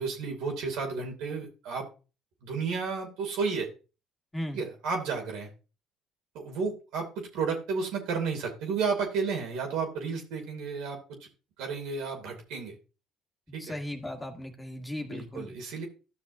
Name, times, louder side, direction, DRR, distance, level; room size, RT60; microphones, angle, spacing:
voice 1, 0.0-1.9 2.4-3.7 4.5-5.5 6.3-7.1 7.3-11.0 11.6-12.7 13.5-13.8 15.0-15.9, right 5 dB, 75° right, 2 dB, 2.7 m, -32 dB
voice 2, 13.6-15.5, left 1 dB, 15° left, 3 dB, 1.9 m, -37 dB
13.5 x 6.1 x 2.6 m, 0.32 s
hypercardioid pair, 65°, 0 cm